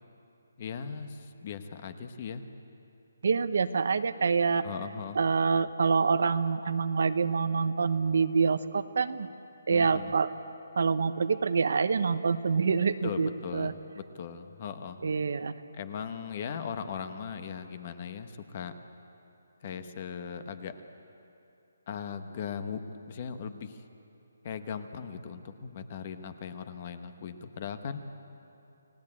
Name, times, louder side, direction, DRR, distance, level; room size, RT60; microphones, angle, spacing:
voice 1, 0.6-2.4 4.6-5.2 9.7-10.1 13.0-15.0 15.8-18.7 19.6-20.7 21.9-22.8 23.1-23.8 24.4-28.0, left 7 dB, 30° left, 9 dB, 1.1 m, -38 dB
voice 2, 3.2-4.6 5.1-9.3 9.7-10.3 10.8-13.7 15.0-15.6, right 5 dB, 55° right, 12 dB, 0.9 m, -26 dB
29.5 x 18.5 x 8.7 m, 2.8 s
hypercardioid pair, 175°, 0 cm